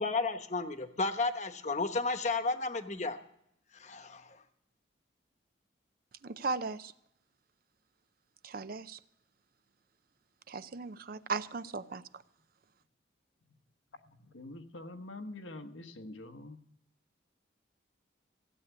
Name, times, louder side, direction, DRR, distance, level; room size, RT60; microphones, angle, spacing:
voice 1, 0.0-3.2 3.7-4.4, left 3 dB, 40° left, 1.0 m, -33 dB
voice 2, 6.2-6.9 8.4-9.0 10.5-12.0, right 4 dB, 50° right, 0.5 m, -37 dB
voice 3, 13.9-16.6, left 2 dB, 90° left, 1.2 m, -46 dB
16.0 x 8.2 x 8.2 m
head